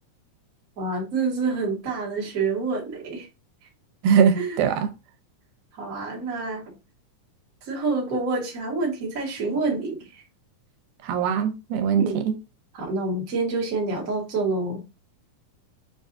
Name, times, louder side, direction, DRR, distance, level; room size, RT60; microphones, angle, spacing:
voice 1, 0.8-3.3 4.4-4.6 5.8-6.6 7.7-10.2 12.0-12.2 12.7-14.8, right 3 dB, 45° right, 1.2 m, -27 dB
voice 2, 4.0-4.9 11.0-12.3, right 7 dB, 90° right, 2.1 m, -21 dB
6.8 x 2.4 x 2.5 m
omnidirectional pair, 3.6 m